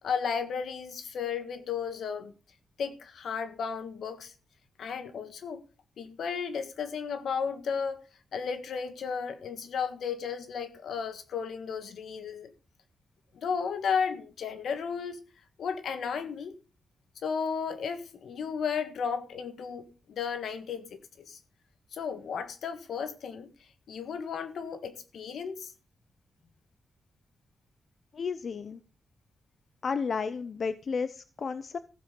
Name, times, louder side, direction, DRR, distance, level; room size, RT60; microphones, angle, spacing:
voice 1, 0.0-2.3 2.8-4.3 4.8-5.6 6.0-8.0 8.3-12.5 13.3-15.2 15.6-16.5 17.2-21.4 21.9-23.5 23.9-25.7, left 6 dB, 80° left, 1.5 m, -34 dB
voice 2, 28.1-28.8 29.8-31.8, left 5 dB, 55° left, 0.6 m, -32 dB
15.0 x 7.6 x 5.3 m
cardioid pair, 100°, 0 cm